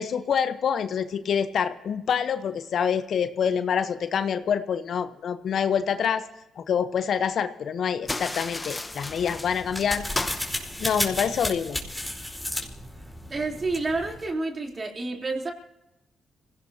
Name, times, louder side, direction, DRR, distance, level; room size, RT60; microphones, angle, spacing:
voice 1, 0.0-6.3 6.6-10.0 10.8-11.8, left 7 dB, 65° left, 11 dB, 1.0 m, -26 dB
sound 1, 8.0-11.4, left 2 dB, 25° left, 1.2 m, -35 dB
sound 2, 8.9-14.3, left 1 dB, 5° left, 4.5 m, -33 dB
voice 2, 13.3-15.5, right 3 dB, 40° right, 1 dB, 3.6 m, -29 dB
27.0 x 17.5 x 2.9 m, 0.91 s
supercardioid pair, 55°, 0 cm